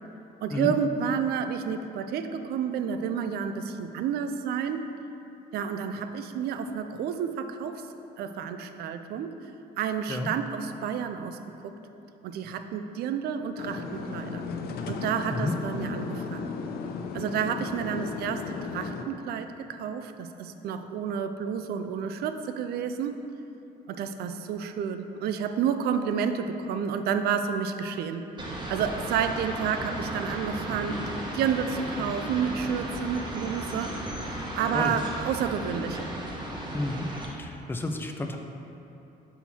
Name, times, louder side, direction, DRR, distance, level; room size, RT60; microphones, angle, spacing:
voice 1, 0.4-4.9 5.5-7.8 8.2-9.3 9.8-11.4 11.6-11.7 12.2-14.4 14.9-16.5 17.1-23.2 23.9-28.2 28.7-31.0 31.3-33.9 34.5-36.1, right 7 dB, 70° right, 9 dB, 0.4 m, -30 dB
sound 1, 13.6-19.0, left 4 dB, 65° left, 0.5 m, -35 dB
sound 2, 28.4-37.3, right 1 dB, 25° right, 1.0 m, -35 dB
voice 2, 36.7-37.1 37.4-38.4, left 2 dB, 10° left, 4 dB, 0.4 m, -31 dB
5.7 x 4.4 x 4.2 m, 3.0 s
cardioid pair, 110°, 17 cm